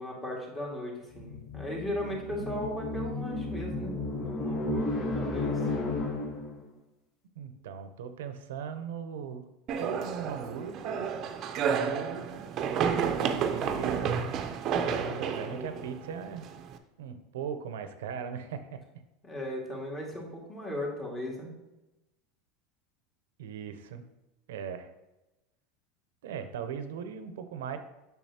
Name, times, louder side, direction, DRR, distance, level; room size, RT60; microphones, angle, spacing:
voice 1, 0.0-5.6 14.8-15.8 19.2-21.5, left 1 dB, 20° left, -2 dB, 2.0 m, -37 dB
sound 1, 1.1-6.7, left 2 dB, 40° left, 0.8 m, -33 dB
voice 2, 7.4-9.4 9.8-11.1 11.8-12.5 12.9-14.2 14.9-16.5 17.0-18.8 23.4-24.0 24.5-24.9 26.2-27.8, right 7 dB, 85° right, 9 dB, 0.6 m, -38 dB
sound 2, 9.7-16.8, right 7 dB, 45° right, 0.6 m, -31 dB
7.1 x 5.9 x 2.9 m, 0.99 s
supercardioid pair, 120°, 0 cm